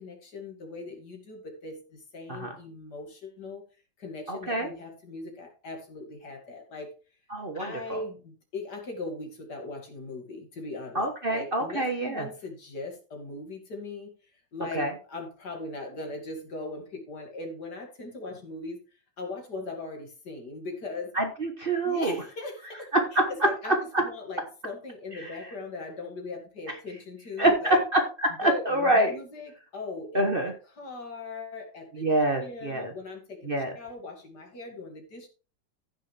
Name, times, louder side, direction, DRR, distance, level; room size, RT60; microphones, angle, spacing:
voice 1, 0.0-3.6 4.0-6.9 7.5-14.1 14.5-18.8 19.2-21.1 21.8-22.9 23.4-23.7 24.0-27.8 28.4-30.5 30.8-32.1 32.3-35.3, left 3 dB, 65° left, 2 dB, 3.0 m, -39 dB
voice 2, 4.3-4.7 7.3-8.0 10.9-12.2 14.7-14.9 21.1-22.2 22.9-23.0 23.6-24.0 25.2-25.3 27.4-28.0 28.4-29.2 30.1-30.5 32.0-32.9 33.4-33.8, right 1 dB, 35° right, 4 dB, 1.3 m, -26 dB
15.0 x 6.3 x 3.4 m, 0.35 s
omnidirectional pair, 2.0 m